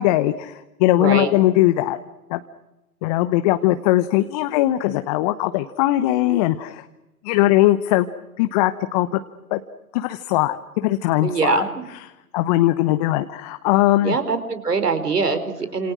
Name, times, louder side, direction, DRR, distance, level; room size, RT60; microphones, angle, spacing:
voice 1, 0.0-2.0 2.3-2.4 3.0-6.9 7.2-8.1 8.4-9.1 9.5-9.6 9.9-11.6 12.3-14.2, left 15 dB, 25° left, 10 dB, 1.0 m, -20 dB
voice 2, 0.9-1.3 11.2-11.8 14.0-15.9, right 4 dB, 80° right, 10 dB, 4.5 m, -23 dB
29.5 x 27.5 x 6.3 m, 0.97 s
figure-of-eight pair, 125°, 46 cm